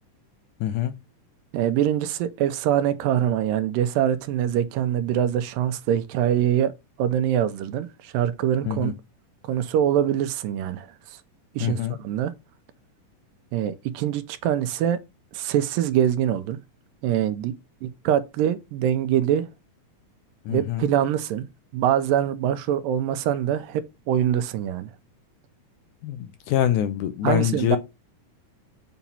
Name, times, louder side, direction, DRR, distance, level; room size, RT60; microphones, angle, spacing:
voice 1, 0.6-0.9 8.7-8.9 11.6-12.0 20.5-20.9 26.0-27.8, left 11 dB, 75° left, 1.9 m, -25 dB
voice 2, 1.5-6.7 7.0-8.9 9.5-10.9 11.6-12.3 13.5-15.0 15.3-16.6 17.0-17.5 17.8-19.5 20.5-21.5 21.7-24.9 27.2-27.8, right 10 dB, 85° right, 2.3 m, -24 dB
7.0 x 2.9 x 5.4 m
omnidirectional pair, 3.9 m